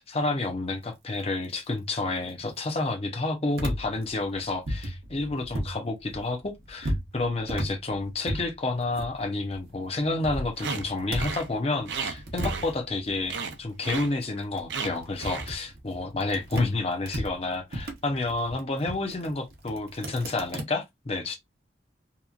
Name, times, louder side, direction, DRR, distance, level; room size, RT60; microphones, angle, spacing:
voice 1, 0.0-21.4, left 2 dB, 35° left, 0.7 m, -30 dB
sound 1, 3.6-5.8 6.1-9.6 10.0-11.5 11.8-16.7 17.1-20.6, equal, 60° right, 0.8 m, -35 dB
sound 2, 10.6-10.8 11.1-11.5 11.9-13.0 13.3-13.6 13.8-14.1 14.7-14.9 15.2-15.5, right 5 dB, 85° right, 0.5 m, -33 dB
2.9 x 2.3 x 2.4 m
head